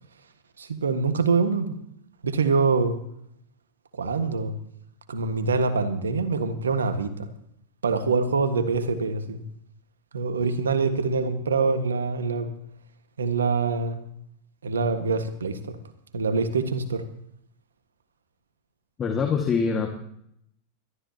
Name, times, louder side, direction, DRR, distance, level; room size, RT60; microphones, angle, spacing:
voice 1, 0.6-1.7 2.2-3.0 4.0-4.5 5.1-7.3 7.8-9.4 10.1-12.5 13.2-14.0 14.6-15.8 16.1-17.0, right 4 dB, 85° right, 9 dB, 1.6 m, -25 dB
voice 2, 19.0-19.9, left 5 dB, 30° left, 4 dB, 1.9 m, -24 dB
23.0 x 13.0 x 2.9 m, 0.73 s
hypercardioid pair, 100°, 0 cm